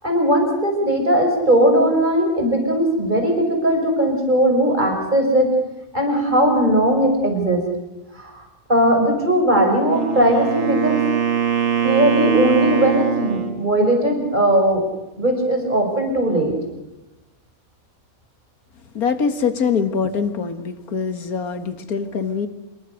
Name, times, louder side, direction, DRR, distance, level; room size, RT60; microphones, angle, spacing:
voice 1, 0.0-5.5 5.9-7.6 8.1-8.4 8.7-11.0 11.8-14.8 15.2-16.5, right 1 dB, 30° right, 3 dB, 5.9 m, -18 dB
Wind instrument woodwind instrument, 9.7-13.6, right 8 dB, 60° right, 2.2 m, -22 dB
voice 2, 18.9-22.5, left 6 dB, 90° left, 9 dB, 2.2 m, -23 dB
27.0 x 23.5 x 6.6 m, 1.0 s
omnidirectional pair, 1.5 m